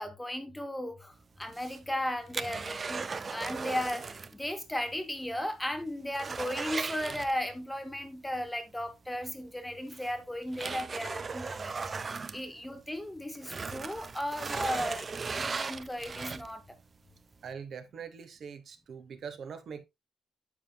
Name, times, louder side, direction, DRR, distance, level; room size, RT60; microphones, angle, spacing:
voice 1, 0.0-11.7 12.3-16.6, left 1 dB, 5° left, 0.8 m, -36 dB
sound 1, 1.4-4.4 4.7-4.8 5.2-5.3 5.7-7.7 9.1-9.2 9.9-13.0 13.3-16.7 17.2-17.3, right 4 dB, 25° right, 0.4 m, -37 dB
voice 2, 17.4-19.8, right 6 dB, 45° right, 1.0 m, -43 dB
9.7 x 7.0 x 2.3 m
cardioid pair, 175°, 0 cm